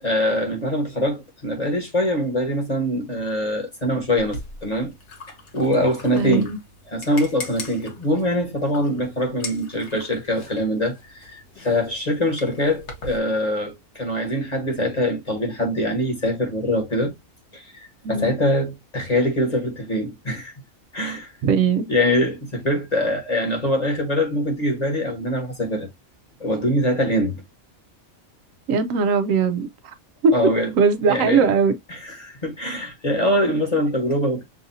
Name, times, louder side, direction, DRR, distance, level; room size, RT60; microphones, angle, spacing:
voice 1, 0.0-4.9 5.5-6.5 6.9-17.1 17.5-20.5 20.9-21.3 21.9-25.9 26.4-27.4 30.3-30.7 31.1-31.5 31.9-34.4, equal, 30° left, 1.4 m, -23 dB
sound 1, 4.2-13.2, left 2 dB, 55° left, 1.4 m, -40 dB
voice 2, 6.1-6.6 18.0-18.3 21.4-21.9 28.7-29.9 30.2-30.3 30.8-31.8, right 5 dB, 75° right, 1.0 m, -19 dB
6.2 x 2.6 x 2.6 m
omnidirectional pair, 1.4 m